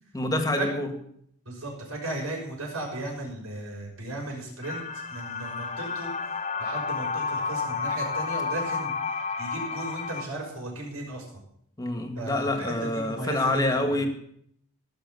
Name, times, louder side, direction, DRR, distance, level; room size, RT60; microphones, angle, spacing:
voice 1, 0.1-0.9 11.8-14.1, left 2 dB, 15° left, 5 dB, 1.8 m, -27 dB
voice 2, 1.4-4.8 5.1-6.1 6.6-8.9 9.4-11.4 12.2-13.6 13.9-14.0, right 2 dB, 85° right, -1 dB, 6.1 m, -35 dB
sound 1, 4.6-10.2, left 5 dB, 35° left, 0.9 m, -31 dB
18.5 x 6.4 x 7.0 m, 0.69 s
head